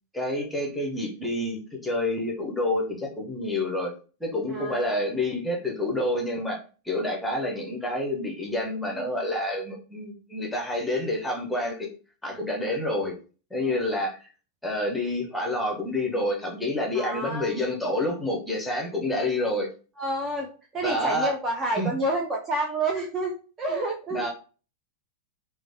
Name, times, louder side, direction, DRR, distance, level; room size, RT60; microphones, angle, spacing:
voice 1, 0.1-3.9 4.2-6.6 6.8-11.9 12.2-13.1 13.5-14.3 14.6-19.7 20.8-21.3 21.7-21.9 24.1-24.3, left 1 dB, 5° left, -1 dB, 0.8 m, -28 dB
voice 2, 4.5-5.0 13.6-13.8 16.9-17.5 20.0-24.3, right 1 dB, 25° right, 0 dB, 0.5 m, -29 dB
3.0 x 2.1 x 2.7 m, 0.37 s
figure-of-eight pair, 90°, 0 cm